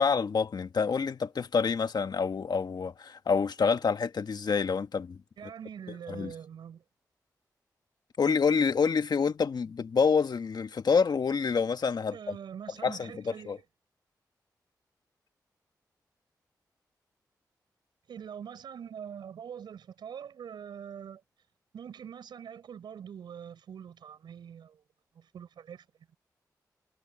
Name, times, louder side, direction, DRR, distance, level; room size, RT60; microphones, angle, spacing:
voice 1, 0.0-5.5 6.1-6.3 8.2-12.4 12.8-13.6, left 5 dB, 65° left, 1.6 m, -27 dB
voice 2, 5.4-6.8 12.1-13.6 18.1-21.2 21.7-24.8 25.1-25.8, right 8 dB, 90° right, 6.0 m, -44 dB
cardioid pair, 45°, 7 cm